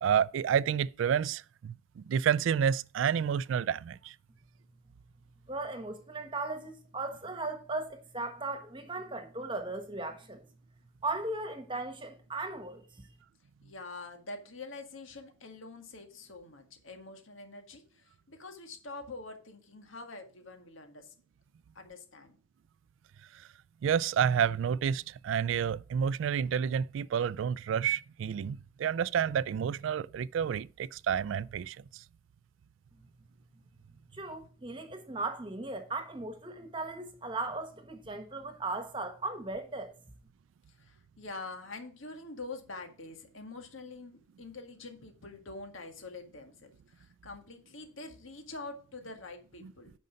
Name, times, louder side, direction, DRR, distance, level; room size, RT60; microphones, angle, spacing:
voice 1, 0.0-4.1 23.8-32.0 49.6-49.7, right 8 dB, 75° right, 0.3 m, -29 dB
voice 2, 5.5-10.4 11.0-13.0 34.1-39.9, right 2 dB, 25° right, 1.3 m, -37 dB
voice 3, 13.6-21.1 21.7-22.4 40.7-49.9, left 3 dB, 85° left, 1.9 m, -45 dB
9.4 x 5.3 x 5.1 m
head